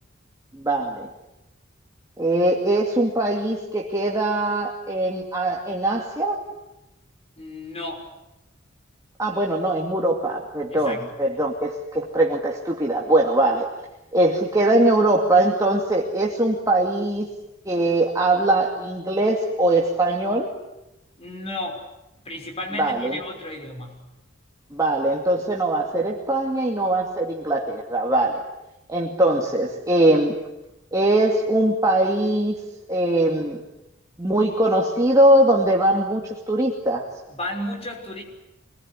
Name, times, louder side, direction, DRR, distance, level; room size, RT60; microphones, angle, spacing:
voice 1, 0.5-1.1 2.2-6.4 9.2-13.7 14.1-17.3 17.6-20.5 22.8-23.2 24.7-28.4 28.9-30.4 30.9-32.6 32.9-33.6 34.2-37.1, right 1 dB, 15° right, -2 dB, 2.5 m, -21 dB
voice 2, 7.4-8.1 10.7-11.1 21.2-21.9 22.2-24.0 37.3-38.2, left 1 dB, 30° left, 3 dB, 5.7 m, -33 dB
26.5 x 21.5 x 9.9 m, 0.92 s
head